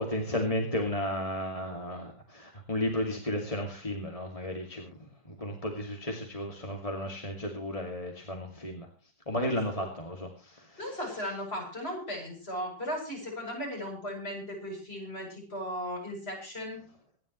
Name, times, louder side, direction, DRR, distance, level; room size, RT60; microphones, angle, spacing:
voice 1, 0.0-4.9 5.3-8.9 9.3-10.8, left 1 dB, 20° left, 1 dB, 2.5 m, -33 dB
voice 2, 10.8-16.9, equal, 35° left, 0 dB, 8.4 m, -36 dB
26.5 x 11.0 x 3.1 m, 0.32 s
omnidirectional pair, 1.9 m